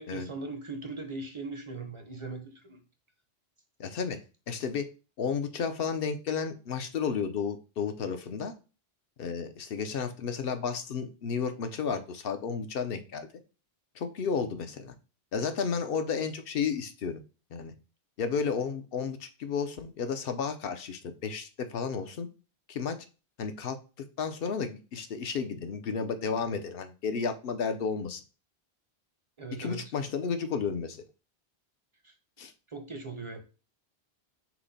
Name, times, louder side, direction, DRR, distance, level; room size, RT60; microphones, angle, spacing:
voice 1, 0.0-2.8 29.4-29.9 32.0-32.1 32.7-33.4, right 3 dB, 35° right, 0.6 m, -39 dB
voice 2, 3.8-4.2 4.5-4.9 5.2-8.5 9.2-13.3 14.0-14.9 15.3-17.2 17.5-17.7 18.2-22.3 22.7-23.0 23.4-23.8 24.2-28.2 29.6-31.0 32.4-32.5, left 6 dB, 65° left, 0.8 m, -32 dB
5.7 x 2.1 x 4.0 m
omnidirectional pair, 1.1 m